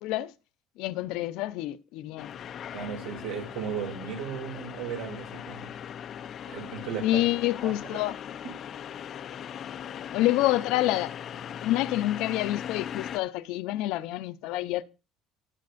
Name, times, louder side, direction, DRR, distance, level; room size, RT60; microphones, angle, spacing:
voice 1, 0.0-0.3 0.8-2.3 7.0-8.2 10.1-11.2 11.6-14.8, left 16 dB, 75° left, 0.7 m, -27 dB
sound 1, 2.2-13.2, left 9 dB, 35° left, 0.5 m, -39 dB
voice 2, 2.7-5.7 6.5-7.2 7.6-7.7, right 7 dB, 85° right, 2.8 m, -35 dB
19.5 x 6.5 x 2.6 m
cardioid pair, 160°, 0 cm